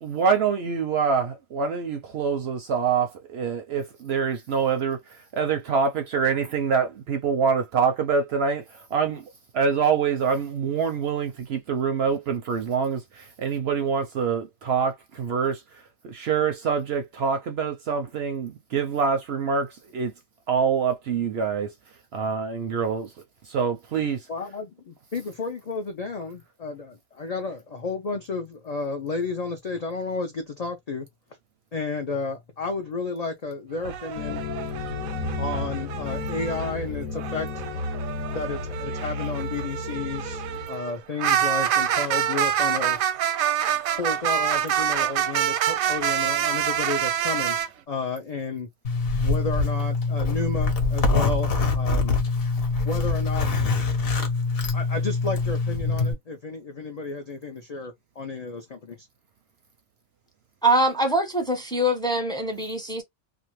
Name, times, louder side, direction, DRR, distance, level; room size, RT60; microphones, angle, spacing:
voice 1, 0.0-20.1 20.5-21.7 22.1-23.1 23.4-24.3, right 6 dB, 65° right, 0.7 m, -25 dB
voice 2, 24.3-31.1 31.7-34.5 35.4-37.6 38.3-43.0 44.0-47.6 47.9-48.7 49.2-52.2 52.8-53.5 54.7-59.1, left 4 dB, 65° left, 0.3 m, -32 dB
sound 1, 33.8-36.7 37.2-47.7, right 10 dB, 85° right, 1.0 m, -27 dB
sound 2, 34.2-40.7, left 3 dB, 85° left, 1.0 m, -33 dB
Zipper (clothing), 48.8-56.1, left 3 dB, 50° left, 0.9 m, -24 dB
voice 3, 60.6-63.0, right 1 dB, 5° left, 0.6 m, -23 dB
2.6 x 2.3 x 3.0 m
omnidirectional pair, 1.4 m